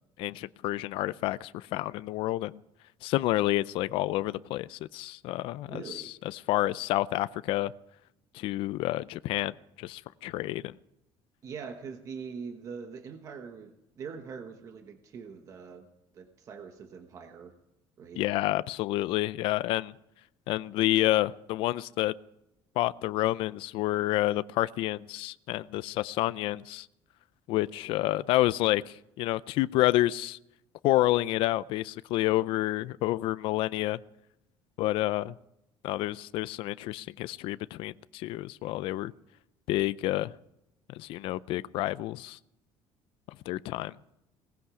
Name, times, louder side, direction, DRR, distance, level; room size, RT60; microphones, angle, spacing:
voice 1, 0.2-2.6 3.0-7.7 8.3-10.8 18.2-19.9 20.5-22.1 22.8-26.9 27.5-30.4 30.8-34.0 34.8-35.3 35.8-39.1 39.7-40.3 40.9-42.4 43.5-43.9, left 16 dB, 60° left, 16 dB, 0.5 m, -29 dB
voice 2, 5.7-6.2 11.4-15.9 16.1-17.5 18.0-18.2, right 6 dB, 35° right, 6 dB, 1.2 m, -43 dB
18.5 x 16.0 x 4.9 m, 0.83 s
cardioid pair, 175°, 10 cm